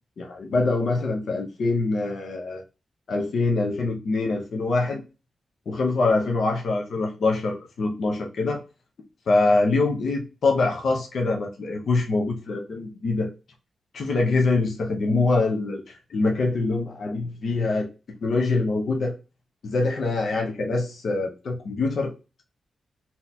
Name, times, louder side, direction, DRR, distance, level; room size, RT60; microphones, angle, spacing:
voice 1, 0.2-2.6 3.1-5.0 5.7-8.6 9.3-13.3 13.9-17.9 18.2-19.1 19.6-22.1, left 3 dB, 65° left, 0.7 m, -24 dB
4.0 x 2.8 x 2.7 m
wide cardioid pair, 125°, 0 cm